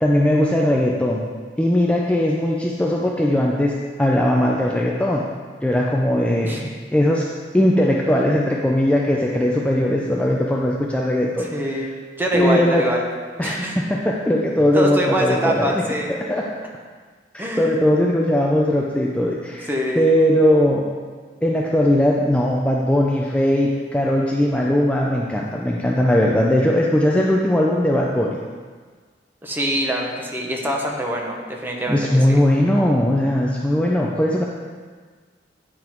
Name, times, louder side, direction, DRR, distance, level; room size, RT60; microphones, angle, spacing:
voice 1, 0.0-1.2 1.6-3.7 4.0-5.2 5.6-7.2 7.5-11.5 12.3-12.8 13.4-15.7 16.1-16.4 17.3-20.9 21.4-28.4 31.9-34.4, left 1 dB, 5° left, -2 dB, 0.4 m, -19 dB
voice 2, 11.4-11.9 12.2-13.0 13.4-13.8 14.7-16.1 17.4-17.7 19.7-20.1 29.4-32.4, equal, 10° right, -1 dB, 0.9 m, -24 dB
9.8 x 3.7 x 4.5 m, 1.5 s
head